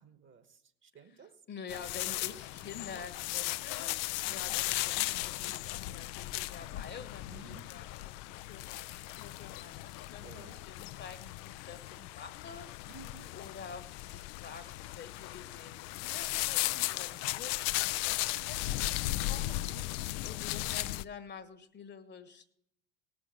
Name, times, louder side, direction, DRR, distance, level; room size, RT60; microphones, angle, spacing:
voice 1, 0.0-1.3 4.2-4.6 7.3-7.6 10.2-10.6 12.9-13.3 19.4-19.8, right 5 dB, 35° right, 11 dB, 1.5 m, -54 dB
voice 2, 0.9-3.9 4.3-12.9 13.3-19.6 20.2-22.5, left 6 dB, 30° left, 11 dB, 1.3 m, -48 dB
sound 1, 1.7-21.0, left 18 dB, 65° left, 0.5 m, -36 dB
18.0 x 6.4 x 7.6 m, 0.75 s
hypercardioid pair, 80°, 33 cm